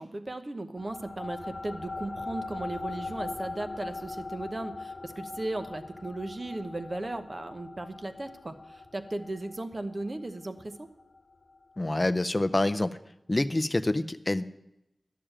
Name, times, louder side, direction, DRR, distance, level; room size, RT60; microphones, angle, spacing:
voice 1, 0.0-10.9, right 2 dB, 35° right, 8 dB, 0.9 m, -36 dB
sound 1, 0.8-11.6, left 3 dB, 55° left, 1.1 m, -41 dB
voice 2, 11.8-12.9 13.3-14.4, left 1 dB, 25° left, 10 dB, 0.5 m, -26 dB
11.5 x 6.9 x 8.8 m, 0.87 s
wide cardioid pair, 100°, 0 cm